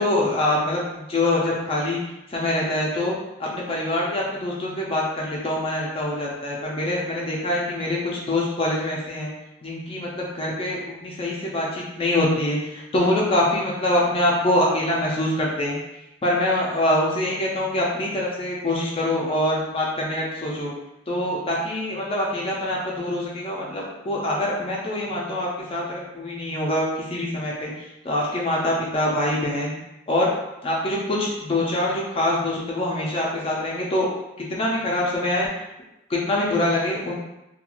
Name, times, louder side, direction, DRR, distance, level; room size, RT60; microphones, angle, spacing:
voice 1, 0.0-2.0 2.3-9.3 9.6-15.8 16.2-20.7 21.1-27.7 28.0-29.7 30.1-30.3 30.6-34.1 34.4-35.5 36.1-37.1, left 1 dB, 30° left, -3 dB, 0.4 m, -24 dB
2.4 x 2.2 x 2.9 m, 0.92 s
head